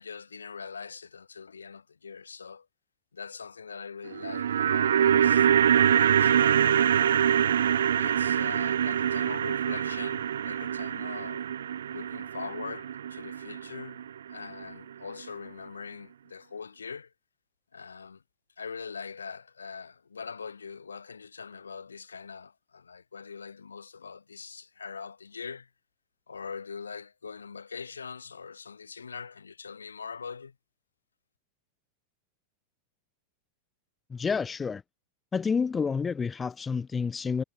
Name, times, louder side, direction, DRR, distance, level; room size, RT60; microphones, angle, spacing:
voice 1, 0.0-2.7 3.1-7.3 7.9-11.5 11.9-17.1 17.7-18.2 18.6-25.7 26.3-30.6, left 5 dB, 75° left, 5.6 m, -42 dB
sound 1, 4.1-14.3 14.6-14.7, right 9 dB, 65° right, 0.7 m, -25 dB
voice 2, 34.1-34.8 35.3-37.4, left 5 dB, 15° left, 0.6 m, -29 dB
figure-of-eight pair, 90°, 0 cm